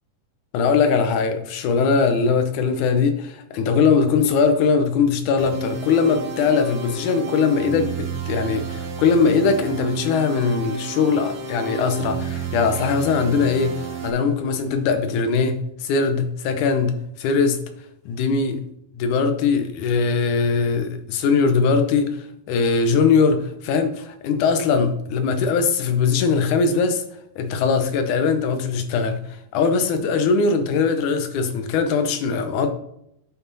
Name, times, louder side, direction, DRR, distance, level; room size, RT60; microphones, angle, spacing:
voice 1, 0.5-17.6 18.1-18.6 19.0-27.0 27.4-29.2 29.5-32.7, left 5 dB, 75° left, 2.4 m, -21 dB
sound 1, 5.4-14.1, right 6 dB, 90° right, 2.9 m, -31 dB
9.8 x 6.0 x 4.1 m
omnidirectional pair, 3.7 m